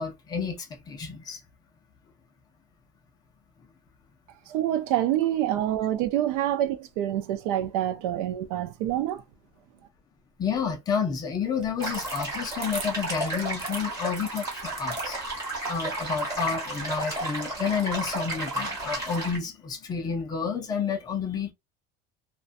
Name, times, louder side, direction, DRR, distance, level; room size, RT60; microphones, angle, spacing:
voice 1, 0.0-1.4 10.4-15.2 15.7-21.5, left 6 dB, 20° left, 0.5 m, -30 dB
voice 2, 4.5-9.2, right 12 dB, 70° right, 0.5 m, -26 dB
sound 1, 11.5-16.6, right 5 dB, 35° right, 0.7 m, -42 dB
sound 2, 11.8-19.4, right 2 dB, 15° right, 1.3 m, -32 dB
2.6 x 2.2 x 2.4 m
cardioid pair, 170°, 20 cm